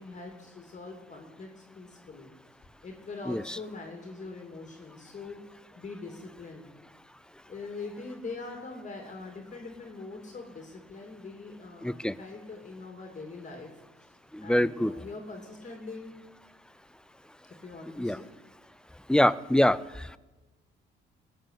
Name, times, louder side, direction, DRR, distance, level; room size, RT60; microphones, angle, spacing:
voice 1, 0.0-1.5 1.7-2.3 2.8-5.4 5.8-6.6 7.4-13.7 14.4-16.1 17.6-18.3, left 3 dB, 40° left, 2 dB, 2.5 m, -42 dB
voice 2, 3.3-3.6 11.8-12.2 14.3-14.9 18.0-18.2 19.1-20.2, left 1 dB, 5° left, 18 dB, 0.4 m, -25 dB
18.5 x 6.3 x 8.1 m, 1.2 s
cardioid pair, 90°, 20 cm